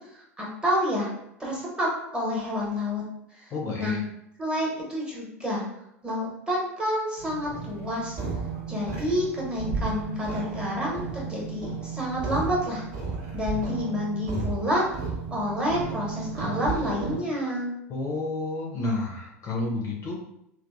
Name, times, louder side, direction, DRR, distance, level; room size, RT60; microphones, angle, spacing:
voice 1, 0.1-1.1 1.4-3.0 3.3-4.0 4.4-5.6 6.0-8.2 8.7-12.9 13.3-14.9 15.3-17.8, left 1 dB, 10° right, -5 dB, 1.0 m, -29 dB
voice 2, 3.5-4.0 17.9-20.2, left 2 dB, 35° left, -1 dB, 0.5 m, -30 dB
sound 1, 7.2-17.2, right 5 dB, 50° right, 0.9 m, -33 dB
2.7 x 2.0 x 2.3 m, 0.79 s
hypercardioid pair, 85°, 8 cm